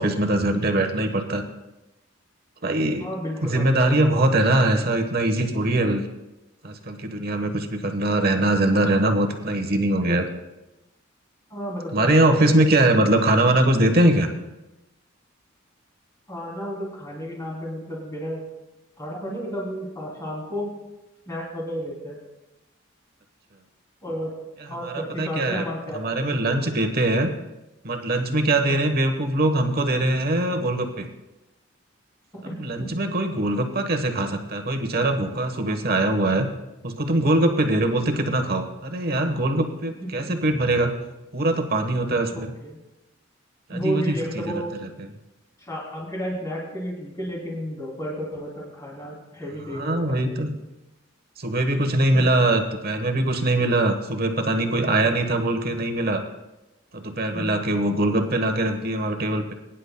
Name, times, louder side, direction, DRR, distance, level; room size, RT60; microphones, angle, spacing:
voice 1, 0.0-1.4 2.6-3.1 3.4-6.0 6.6-10.3 11.9-14.3 24.8-25.6 25.9-27.3 27.8-31.1 32.4-36.5 36.8-40.9 41.3-42.5 43.7-44.5 44.8-45.1 49.7-50.5 51.4-56.2 56.9-59.5, right 1 dB, 50° right, 5 dB, 1.2 m, -22 dB
voice 2, 3.0-3.9 11.5-13.1 16.3-18.4 19.0-20.7 21.3-22.2 24.0-24.3 24.7-26.8 28.7-28.8 32.4-32.9 42.3-42.8 43.7-44.9 45.6-50.2 57.3-57.6, equal, 15° left, -4 dB, 2.9 m, -32 dB
21.5 x 10.0 x 2.2 m, 0.98 s
head